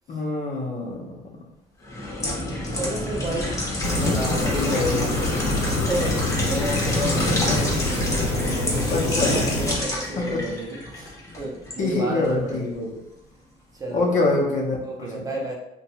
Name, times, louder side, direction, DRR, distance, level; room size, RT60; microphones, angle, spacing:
voice 1, 0.1-1.1 4.5-5.1 8.9-9.3 10.2-10.4 11.8-13.0 13.9-15.2, left 2 dB, 50° left, 0 dB, 0.7 m, -25 dB
sound 1, 1.8-11.8 12.2-12.4, left 1 dB, 20° left, 0.8 m, -27 dB
voice 2, 2.7-3.5 3.9-5.3 5.6-12.8 13.7-14.3 14.8-15.5, right 1 dB, 20° right, -1 dB, 0.6 m, -32 dB
sound 2, 3.8-9.7, left 2 dB, 70° left, 0.8 m, -27 dB
2.6 x 2.2 x 3.0 m, 0.82 s
cardioid pair, 110°, 17 cm